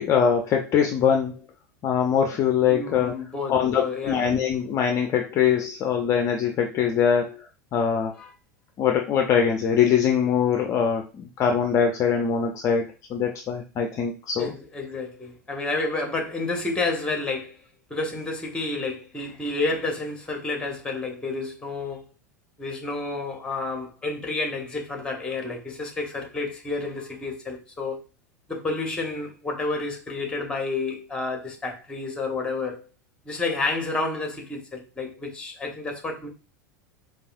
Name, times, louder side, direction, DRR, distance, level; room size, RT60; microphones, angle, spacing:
voice 1, 0.0-1.3 1.8-3.1 3.5-7.3 7.7-8.1 8.8-14.5, left 7 dB, 35° left, 0.5 m, -22 dB
voice 2, 2.7-4.3 8.1-8.3 14.4-17.6 17.9-22.0 22.6-28.0 28.5-32.9 33.2-36.3, left 3 dB, 10° left, 1.1 m, -30 dB
4.8 x 2.4 x 2.5 m
figure-of-eight pair, 85°, 9 cm